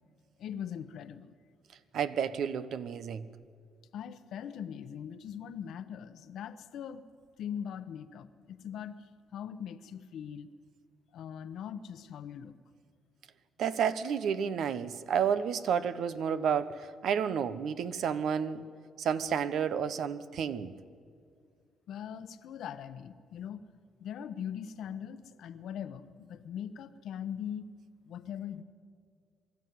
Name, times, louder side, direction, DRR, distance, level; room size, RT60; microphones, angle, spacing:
voice 1, 0.4-1.3 3.9-7.0 7.4-10.5 11.1-12.5 21.9-23.6 24.0-27.7 28.0-28.6, left 8 dB, 75° left, 12 dB, 1.0 m, -41 dB
voice 2, 1.9-3.3 13.6-18.6 19.0-20.7, right 7 dB, 70° right, 14 dB, 0.9 m, -31 dB
24.0 x 13.0 x 9.4 m, 2.1 s
cardioid pair, 90°, 0 cm